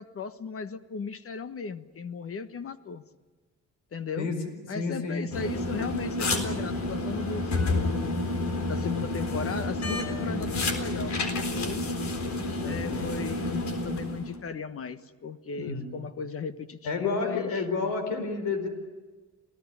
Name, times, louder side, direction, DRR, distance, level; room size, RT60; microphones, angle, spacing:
voice 1, 0.0-3.0 3.9-4.3 4.7-8.2 8.7-11.9 12.6-17.6, left 5 dB, 50° left, 11 dB, 1.3 m, -36 dB
voice 2, 4.7-5.3 15.5-15.9 16.8-18.7, left 4 dB, 90° left, 7 dB, 4.5 m, -30 dB
sound 1, 5.3-14.4, left 2 dB, 65° left, 3.9 m, -30 dB
28.0 x 17.5 x 9.7 m, 1.3 s
cardioid pair, 90°, 30 cm